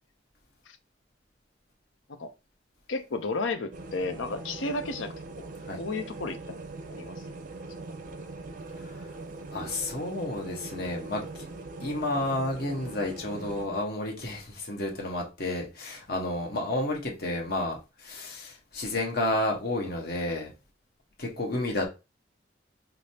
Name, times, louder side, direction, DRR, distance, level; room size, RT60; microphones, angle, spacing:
voice 1, 2.9-6.6 6.9-7.2, left 3 dB, 90° left, 0.6 m, -33 dB
sound 1, 3.7-13.7, right 3 dB, 45° right, 0.4 m, -41 dB
voice 2, 9.5-11.5 11.8-20.5 21.2-21.9, left 1 dB, 55° left, 1.1 m, -31 dB
5.0 x 2.0 x 2.8 m
head